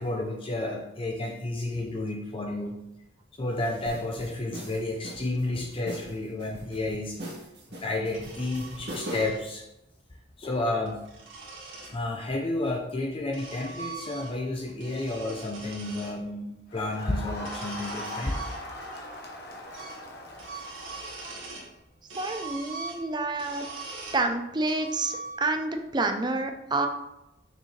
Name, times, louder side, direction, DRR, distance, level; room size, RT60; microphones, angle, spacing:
voice 1, 0.0-2.8 3.3-7.4 7.7-9.6 10.4-11.0 11.9-18.4, left 2 dB, 30° left, 0 dB, 0.7 m, -31 dB
sound 1, 3.8-9.4, equal, 60° right, 2.0 m, -40 dB
sound 2, 8.1-9.4 10.6-12.0 12.9-14.5 14.8-16.2 17.3-19.0 19.3-19.4 19.7-20.0 20.3-21.7 22.1-24.3 24.7-25.6, right 3 dB, 80° right, 1.8 m, -42 dB
Crowd, 16.7-21.5, left 1 dB, 55° left, 1.2 m, -41 dB
voice 2, 22.2-23.7 24.1-26.9, right 3 dB, 25° right, 5 dB, 0.6 m, -28 dB
6.6 x 6.3 x 3.3 m, 0.89 s
head